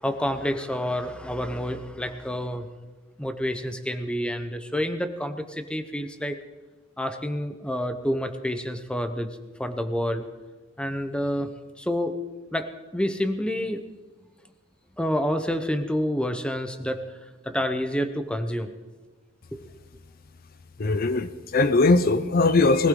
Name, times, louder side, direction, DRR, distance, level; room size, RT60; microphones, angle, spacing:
voice 1, 0.0-2.7 3.2-6.4 7.0-10.3 10.8-11.5 11.8-12.2 12.5-13.8 15.0-17.0 17.4-18.7 19.5-19.7, equal, 5° left, 8 dB, 0.9 m, -28 dB
voice 2, 20.8-22.9, left 3 dB, 50° left, 12 dB, 0.6 m, -20 dB
21.0 x 16.0 x 3.8 m, 1.2 s
head